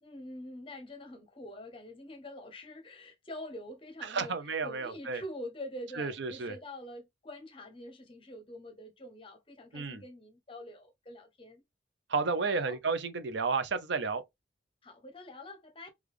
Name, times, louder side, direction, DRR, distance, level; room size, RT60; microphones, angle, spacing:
voice 1, 0.0-11.6 12.4-12.8 14.8-15.9, left 1 dB, 30° left, 0.7 m, -45 dB
voice 2, 4.1-5.2 6.0-6.5 9.7-10.0 12.1-14.2, right 4 dB, 65° right, 0.5 m, -32 dB
3.3 x 2.3 x 3.6 m
head